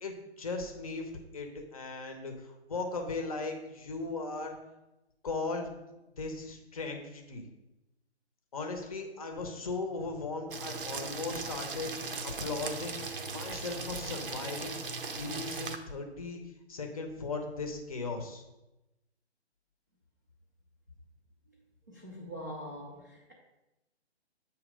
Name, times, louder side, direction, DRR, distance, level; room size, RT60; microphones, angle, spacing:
voice 1, 0.0-4.6 5.2-5.7 6.2-7.4 8.5-13.0 13.3-14.8 15.2-16.4 16.7-18.4, left 3 dB, 35° left, 4 dB, 0.7 m, -37 dB
sound 1, 10.5-15.8, right 3 dB, 50° right, 0.7 m, -38 dB
voice 2, 21.9-23.3, equal, 15° right, -6 dB, 0.4 m, -43 dB
7.6 x 2.9 x 5.0 m, 0.97 s
figure-of-eight pair, 145°, 34 cm